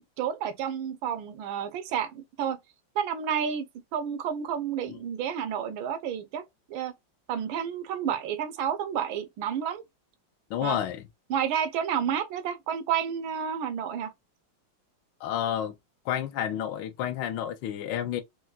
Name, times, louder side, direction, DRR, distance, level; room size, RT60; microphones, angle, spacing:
voice 1, 0.2-2.6 3.0-3.7 3.9-6.4 6.7-6.9 7.3-9.8 10.6-10.8 11.3-14.1, right 8 dB, 80° right, 1.3 m, -30 dB
voice 2, 10.5-11.0 15.2-15.7 16.1-18.2, left 10 dB, 75° left, 1.2 m, -30 dB
4.5 x 2.1 x 2.3 m
omnidirectional pair, 2.2 m